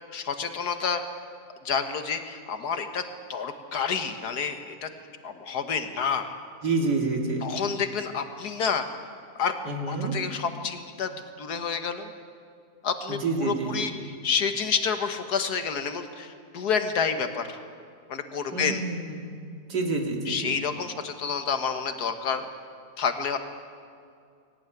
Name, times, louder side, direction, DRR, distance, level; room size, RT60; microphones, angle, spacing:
voice 1, 0.1-1.0 1.7-3.0 3.3-4.9 5.2-6.3 7.4-8.9 9.4-9.5 9.9-11.1 11.4-12.1 12.8-13.9 14.2-17.6 18.1-18.8 20.3-22.5 23.0-23.4, left 6 dB, 70° left, 7 dB, 1.9 m, -29 dB
voice 2, 6.6-7.5 9.6-10.2 13.1-13.9 18.5-19.2 19.7-20.5, right 3 dB, 85° right, 1 dB, 3.2 m, -28 dB
21.0 x 18.0 x 9.1 m, 2.4 s
omnidirectional pair, 1.8 m